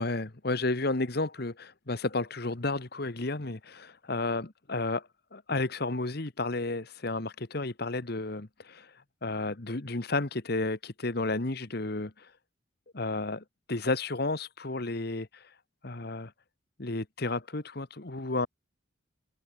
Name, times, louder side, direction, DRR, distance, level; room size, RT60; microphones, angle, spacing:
voice 1, 0.0-5.0 5.3-8.9 9.2-12.3 12.9-15.4 15.8-16.3 16.8-18.5, left 2 dB, 50° left, 1.3 m, -32 dB
head